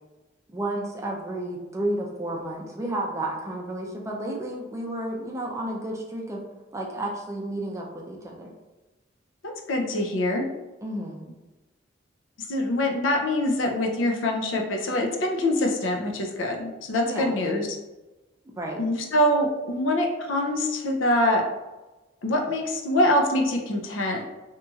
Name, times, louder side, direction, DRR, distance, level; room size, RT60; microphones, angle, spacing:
voice 1, 0.5-6.4 6.7-8.5 10.8-11.3 17.0-17.3 18.6-18.8, right 1 dB, 15° right, -1 dB, 0.4 m, -31 dB
voice 2, 9.7-10.4 12.5-17.7 18.8-21.4 22.2-24.2, left 1 dB, 85° left, 1 dB, 0.5 m, -24 dB
2.9 x 2.7 x 2.3 m, 1.1 s
head